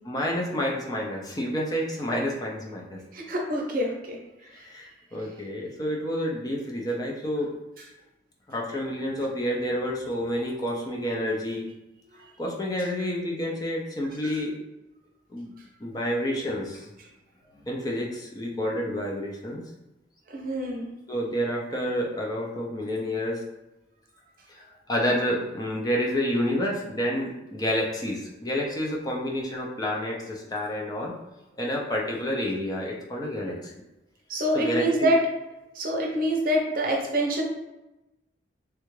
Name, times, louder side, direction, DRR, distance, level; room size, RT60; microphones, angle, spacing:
voice 1, 0.0-3.0 4.5-7.5 8.5-11.7 12.4-14.5 15.3-15.5 15.8-16.9 17.7-19.6 21.1-23.4 24.5-31.1 31.6-33.7 34.5-35.1, equal, 20° left, -2 dB, 0.5 m, -29 dB
voice 2, 3.1-4.2 12.2-12.3 14.2-14.3 20.3-20.9 34.3-35.2 35.7-37.4, equal, 50° right, 0 dB, 0.6 m, -26 dB
3.3 x 2.4 x 3.1 m, 0.98 s
head